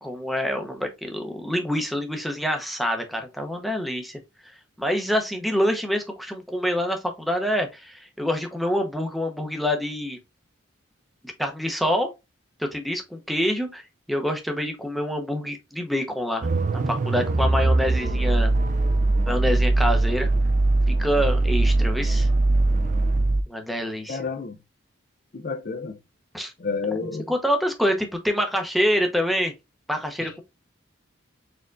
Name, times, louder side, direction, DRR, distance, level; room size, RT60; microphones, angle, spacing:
voice 1, 0.0-4.5 4.8-10.2 11.4-12.1 12.6-13.8 14.1-16.5 16.9-18.5 19.3-20.3 21.0-22.3 23.5-24.2 26.3-26.5 27.3-29.5 29.9-30.4, equal, ahead, 0.7 m, -26 dB
sound 1, 16.4-23.4, right 2 dB, 40° right, 0.4 m, -21 dB
voice 2, 24.1-24.6 25.3-26.0 26.6-27.3 30.2-30.4, left 4 dB, 45° left, 0.5 m, -30 dB
4.4 x 3.6 x 2.5 m
head